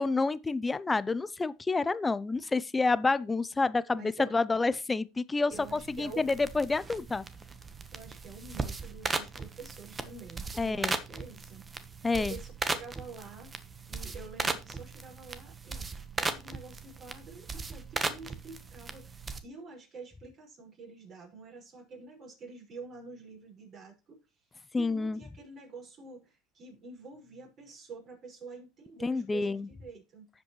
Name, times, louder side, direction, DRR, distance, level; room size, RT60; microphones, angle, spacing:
voice 1, 0.0-5.5 5.9-7.2 10.6-11.0 12.0-12.3 24.7-25.2 29.0-29.7, left 3 dB, 15° left, 0.5 m, -28 dB
voice 2, 3.9-4.3 5.5-6.4 7.9-15.9 16.1-24.3 24.8-30.3, right 4 dB, 40° right, 5.4 m, -48 dB
sound 1, 5.5-19.4, right 4 dB, 20° right, 1.1 m, -38 dB
15.5 x 5.3 x 3.1 m
hypercardioid pair, 95°, 0 cm